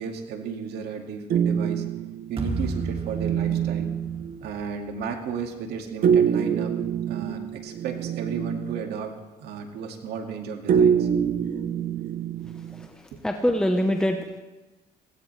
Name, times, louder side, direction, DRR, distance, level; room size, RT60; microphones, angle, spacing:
voice 1, 0.0-1.8 2.3-3.9 4.4-6.7 7.1-9.1 9.4-11.1 13.1-13.2, right 6 dB, 75° right, 3 dB, 2.1 m, -34 dB
sound 1, 1.3-4.4 6.0-9.0 10.7-12.9, right 8 dB, 55° right, 0.8 m, -25 dB
sound 2, 2.4-5.5, right 2 dB, 35° right, 2.3 m, -35 dB
voice 2, 12.4-14.4, equal, 5° left, 4 dB, 0.9 m, -26 dB
18.5 x 16.5 x 3.3 m, 1.1 s
cardioid pair, 110°, 17 cm